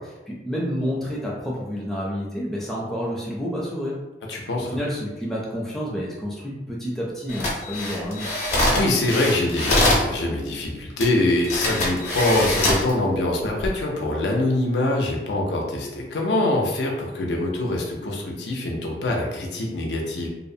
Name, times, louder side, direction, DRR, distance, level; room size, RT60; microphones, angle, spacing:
voice 1, 0.4-4.0 4.3-8.3, equal, ahead, -5 dB, 0.4 m, -29 dB
voice 2, 4.3-4.8 8.7-20.3, left 2 dB, 85° left, -1 dB, 0.5 m, -24 dB
sound 1, 7.3-10.1 11.0-11.1 11.4-12.9 13.5-13.7, left 1 dB, 40° left, 0.6 m, -23 dB
2.6 x 2.0 x 2.6 m, 1.1 s
head